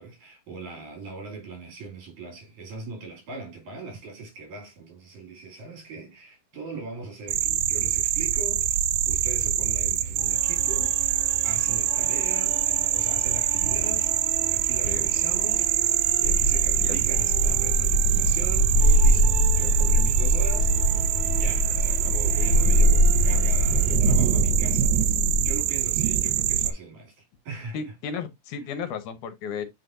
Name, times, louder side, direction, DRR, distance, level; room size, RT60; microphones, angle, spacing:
voice 1, 0.0-10.9 11.4-14.2 14.5-27.9, right 3 dB, 70° right, 4.1 m, -40 dB
sound 1, 7.3-26.7, right 11 dB, 90° right, 2.2 m, -24 dB
sound 2, 10.1-23.9, right 5 dB, 45° right, 2.1 m, -41 dB
sound 3, 16.2-25.6, equal, 30° left, 2.6 m, -23 dB
voice 2, 27.7-29.7, left 6 dB, 75° left, 2.4 m, -34 dB
7.8 x 5.0 x 2.6 m
omnidirectional pair, 3.6 m